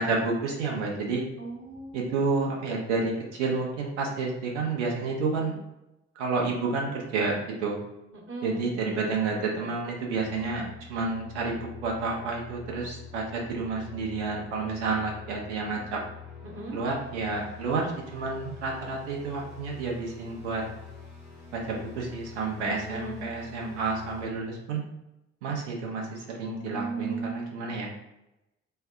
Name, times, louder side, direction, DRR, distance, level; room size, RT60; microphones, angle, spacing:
voice 1, 0.0-1.2 1.9-5.6 6.2-7.8 8.4-10.6 10.9-16.0 16.7-20.6 21.5-24.8 25.4-27.9, right 4 dB, 70° right, -1 dB, 0.8 m, -30 dB
voice 2, 1.4-2.1 8.3-8.6 16.4-16.8 22.9-24.0 26.4-27.6, right 3 dB, 40° right, -1 dB, 1.1 m, -37 dB
sound 1, 10.1-24.3, left 6 dB, 80° left, 1.2 m, -46 dB
4.5 x 2.2 x 3.4 m, 0.91 s
figure-of-eight pair, 40°, 35 cm